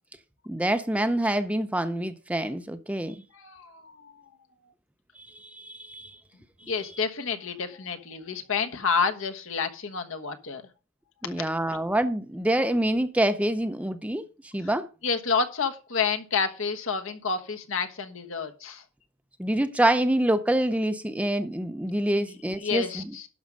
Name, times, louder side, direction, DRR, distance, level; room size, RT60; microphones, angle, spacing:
voice 1, 0.5-3.2 5.3-6.2 11.2-14.3 14.5-14.8 19.4-23.1, right 1 dB, 5° right, 0.5 m, -26 dB
voice 2, 3.3-4.2 6.7-10.6 11.4-11.8 15.0-18.8 22.1-23.3, left 5 dB, 65° left, 1.3 m, -29 dB
11.5 x 6.2 x 5.2 m
head